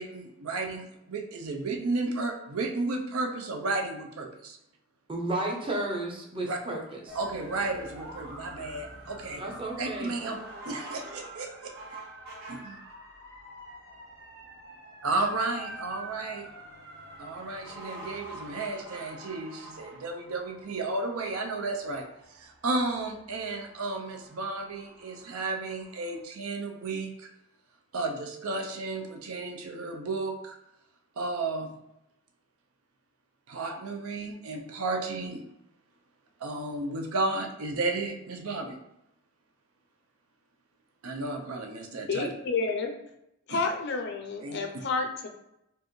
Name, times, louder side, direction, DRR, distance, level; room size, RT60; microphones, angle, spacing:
voice 1, 0.0-4.6 6.4-6.6 7.1-9.4 9.8-11.7 12.5-12.8 15.0-16.5 17.2-27.3 27.9-30.6 31.2-31.7 33.5-35.4 36.4-38.8 41.0-42.3 43.5-43.7 44.4-44.8, right 3 dB, 80° right, 4 dB, 0.6 m, -33 dB
voice 2, 5.1-7.2 9.4-10.2, right 2 dB, 25° right, 0 dB, 0.6 m, -33 dB
sound 1, 7.1-26.2, right 1 dB, 50° right, 1.0 m, -46 dB
voice 3, 42.1-42.9 43.5-45.3, left 4 dB, 55° left, 4 dB, 0.5 m, -30 dB
4.5 x 2.4 x 3.1 m, 0.83 s
head